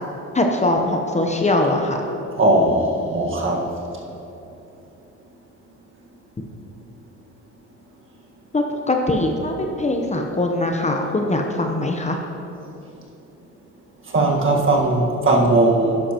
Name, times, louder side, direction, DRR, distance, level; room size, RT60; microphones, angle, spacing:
voice 1, 0.3-2.0 8.5-12.2, left 2 dB, 25° left, 2 dB, 0.9 m, -21 dB
voice 2, 2.4-3.7 14.1-16.0, right 2 dB, 40° right, -1 dB, 1.7 m, -18 dB
12.0 x 9.8 x 3.0 m, 2.9 s
cardioid pair, 90°, 30 cm